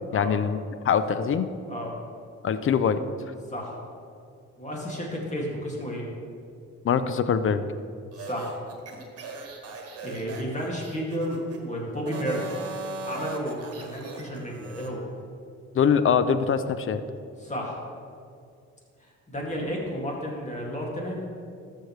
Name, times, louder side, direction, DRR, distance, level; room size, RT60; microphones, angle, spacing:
voice 1, 0.1-0.6 0.8-1.5 2.4-3.0 6.8-7.6 15.7-17.0, left 7 dB, 45° left, 12 dB, 0.5 m, -23 dB
voice 2, 4.6-6.0 8.2-8.5 10.0-12.6 13.0-15.0 17.4-17.8 19.0-21.2, equal, 25° left, -2 dB, 2.3 m, -32 dB
sound 1, 8.1-11.6 12.0-14.9, right 3 dB, 55° right, 1.5 m, -38 dB
13.5 x 6.5 x 3.2 m, 2.4 s
cardioid pair, 90°, 30 cm